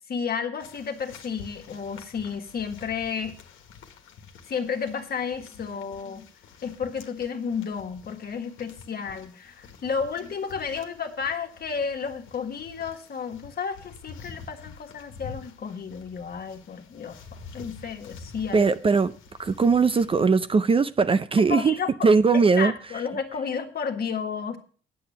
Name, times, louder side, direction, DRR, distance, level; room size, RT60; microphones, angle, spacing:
voice 1, 0.1-3.3 4.5-6.2 6.6-17.2 17.5-18.7 21.5-21.9 22.6-24.6, left 6 dB, 50° left, 1.6 m, -32 dB
sound 1, 0.6-20.2, left 5 dB, 85° left, 1.5 m, -48 dB
voice 2, 18.5-19.1 19.4-22.7, right 4 dB, 25° right, 0.5 m, -20 dB
8.7 x 7.8 x 5.5 m
cardioid pair, 90°, 20 cm